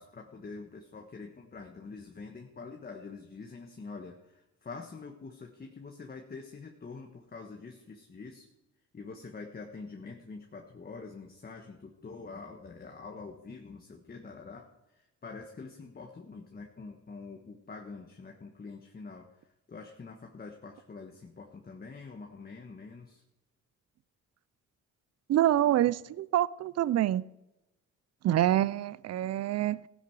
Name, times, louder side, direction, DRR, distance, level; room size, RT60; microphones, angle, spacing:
voice 1, 0.0-4.2 4.6-8.5 8.9-14.7 15.2-19.3 19.7-23.2, left 4 dB, 30° left, 3 dB, 1.4 m, -45 dB
voice 2, 25.3-27.2 28.2-29.8, right 12 dB, 55° right, 20 dB, 0.5 m, -26 dB
16.0 x 10.5 x 4.8 m, 0.95 s
cardioid pair, 90°, 30 cm